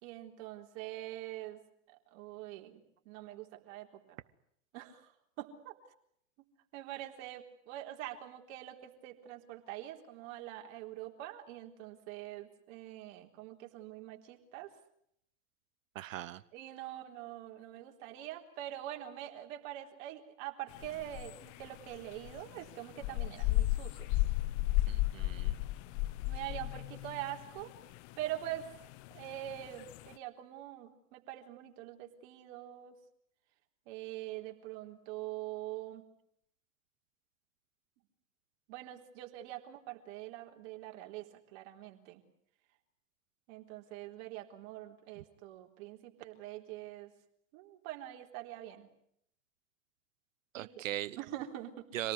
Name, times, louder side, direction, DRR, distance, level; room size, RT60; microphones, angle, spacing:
voice 1, 0.0-1.6 2.1-2.8 3.1-4.2 4.7-5.1 5.4-5.7 6.7-14.7 16.5-24.2 26.3-27.7 28.2-28.7 29.1-33.0 33.9-36.1 38.7-42.2 43.5-47.1 47.5-48.9 50.6-50.8 51.2-51.9, right 13 dB, 60° right, 3 dB, 4.0 m, -44 dB
voice 2, 15.9-16.4 24.9-25.6 50.5-51.2 51.9-52.1, right 13 dB, 80° right, 16 dB, 1.0 m, -39 dB
sound 1, 20.7-30.1, left 18 dB, 50° left, 1.0 m, -34 dB
26.5 x 18.5 x 9.6 m, 0.74 s
hypercardioid pair, 100°, 39 cm